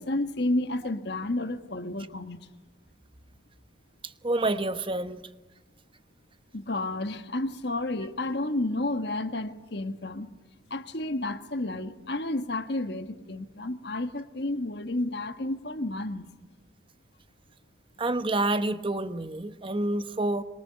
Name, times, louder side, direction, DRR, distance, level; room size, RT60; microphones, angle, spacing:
voice 1, 0.0-2.4 6.5-10.3 10.7-16.3, left 2 dB, 60° left, 1.5 m, -31 dB
voice 2, 4.2-5.2 18.0-20.4, right 2 dB, 25° right, 1.0 m, -28 dB
26.5 x 23.0 x 9.7 m
head